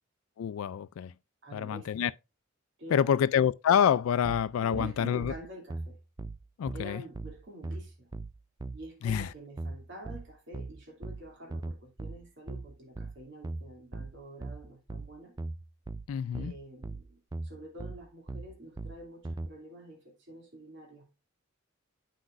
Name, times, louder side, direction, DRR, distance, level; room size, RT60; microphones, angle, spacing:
voice 1, 0.4-1.1 1.5-2.1 2.9-5.3 6.6-7.0 9.0-9.3 16.1-16.5, left 8 dB, 90° left, 0.3 m, -27 dB
voice 2, 1.4-2.1 2.8-3.3 4.6-6.0 6.7-8.1 8.7-15.3 16.3-21.1, right 1 dB, 60° right, 2.5 m, -47 dB
sound 1, 4.2-19.5, right 2 dB, 20° right, 0.3 m, -39 dB
9.1 x 5.9 x 2.5 m
head